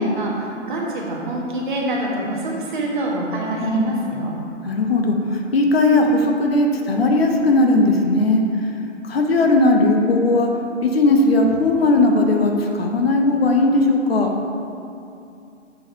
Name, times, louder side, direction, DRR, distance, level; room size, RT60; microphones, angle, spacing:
voice 1, 0.0-4.3, right 1 dB, 40° right, -2 dB, 1.4 m, -25 dB
voice 2, 3.6-4.2 4.6-8.4 9.0-10.5 10.8-14.3, left 2 dB, 50° left, 2 dB, 0.8 m, -17 dB
7.7 x 4.8 x 4.4 m, 2.6 s
figure-of-eight pair, 130°, 38 cm